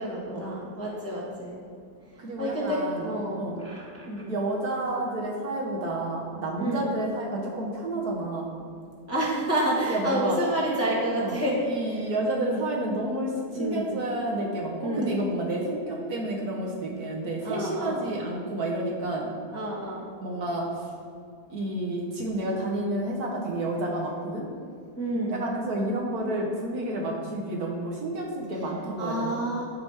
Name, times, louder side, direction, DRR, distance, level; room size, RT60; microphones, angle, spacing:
voice 1, 0.0-1.6 2.4-4.3 6.6-6.9 9.1-11.6 12.4-12.5 13.5-13.9 14.8-15.2 17.4-18.0 19.5-20.0 25.0-25.4 29.0-29.7, right 1 dB, 10° left, -6 dB, 1.2 m, -29 dB
voice 2, 2.2-3.1 3.4-3.6 4.3-8.5 9.9-10.4 11.2-19.3 20.2-20.7 21.5-24.5 25.3-29.4, right 1 dB, 60° right, -2 dB, 1.5 m, -30 dB
12.5 x 4.9 x 3.5 m, 2.4 s
omnidirectional pair, 1.9 m